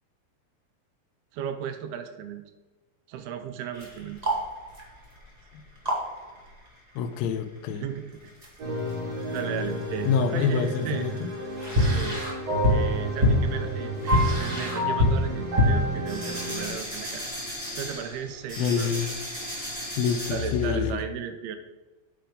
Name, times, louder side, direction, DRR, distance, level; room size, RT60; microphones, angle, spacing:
voice 1, 1.3-2.5 3.1-4.3 7.8-8.2 9.3-11.1 11.8-12.3 12.7-17.3 17.8-18.9 20.3-21.6, right 8 dB, 85° right, 8 dB, 2.7 m, -35 dB
sound 1, 3.7-6.7 6.9-7.0 7.3-7.4 8.2-9.0 9.3-10.0 10.3-20.9, left 1 dB, 25° right, 0.8 m, -28 dB
voice 2, 7.0-7.8 10.1-11.3 18.6-19.1 20.0-21.0, left 6 dB, 80° left, 6 dB, 2.4 m, -26 dB
sound 2, 8.6-16.7, right 1 dB, 45° right, 4.2 m, -31 dB
8.6 x 5.8 x 5.1 m, 1.2 s
omnidirectional pair, 4.4 m